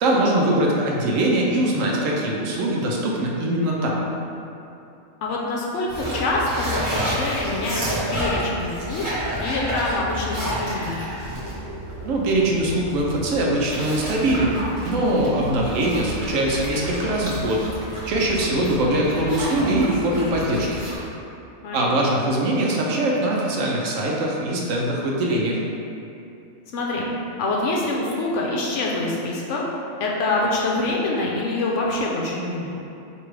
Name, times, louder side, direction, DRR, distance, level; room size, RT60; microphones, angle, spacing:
voice 1, 0.0-4.1 12.0-14.6 14.8-17.6 18.1-20.8 21.7-25.6, right 1 dB, 70° right, -2 dB, 1.0 m, -22 dB
voice 2, 5.2-7.8 8.1-9.1 9.4-11.0 18.6-19.0 21.6-22.2 26.7-27.1 27.4-29.6 30.0-32.7, left 2 dB, 70° left, -3 dB, 0.8 m, -25 dB
sound 1, 5.9-21.0, equal, 40° right, 1.0 m, -30 dB
4.7 x 2.9 x 3.1 m, 2.7 s
omnidirectional pair, 1.5 m